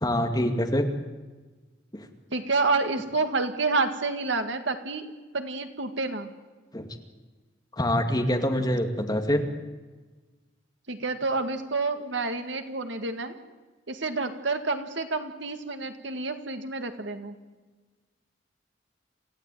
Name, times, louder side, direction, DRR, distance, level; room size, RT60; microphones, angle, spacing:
voice 1, 0.0-0.9 1.9-2.1 6.7-6.9 7.8-9.4, equal, 20° left, 4 dB, 2.2 m, -25 dB
voice 2, 2.3-5.0 5.3-6.3 10.9-13.4 13.9-17.4, right 3 dB, 80° right, 7 dB, 2.0 m, -29 dB
27.0 x 15.5 x 9.2 m, 1.3 s
head